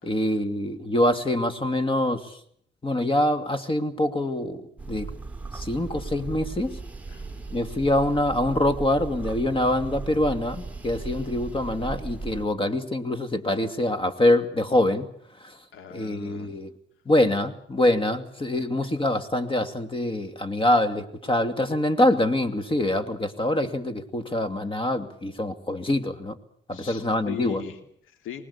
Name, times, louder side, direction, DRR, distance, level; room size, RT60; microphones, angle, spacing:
voice 1, 0.0-2.2 2.8-4.6 4.9-5.1 5.5-6.8 7.5-15.1 15.9-16.7 17.1-26.4 26.7-27.6, left 1 dB, 25° left, 10 dB, 2.5 m, -24 dB
sound 1, 4.8-12.5, right 3 dB, 5° right, 2.5 m, -37 dB
voice 2, 7.1-7.6 15.7-16.5 26.7-28.4, left 9 dB, 85° left, 8 dB, 2.9 m, -40 dB
24.5 x 20.0 x 8.5 m, 0.65 s
cardioid pair, 90°, 20 cm